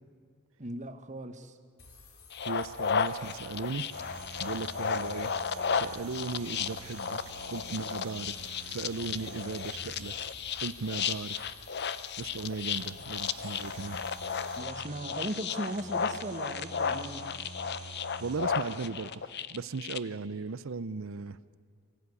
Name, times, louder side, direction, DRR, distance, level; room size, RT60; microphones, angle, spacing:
voice 1, 0.6-1.6 14.6-17.2, right 1 dB, 35° right, 8 dB, 1.4 m, -38 dB
sound 1, 1.8-14.6, left 4 dB, 65° left, 3.0 m, -54 dB
sound 2, 2.3-20.0, left 6 dB, 50° left, 0.7 m, -34 dB
voice 2, 2.4-3.8 4.4-5.3 5.7-7.2 7.5-8.4 8.7-10.1 10.6-11.5 12.2-14.0 18.2-19.2 19.5-21.4, right 4 dB, 60° right, 17 dB, 0.6 m, -37 dB
sound 3, 3.9-10.8 13.1-18.9, right 3 dB, 85° right, 2.3 m, -48 dB
24.0 x 16.0 x 9.7 m, 2.2 s
head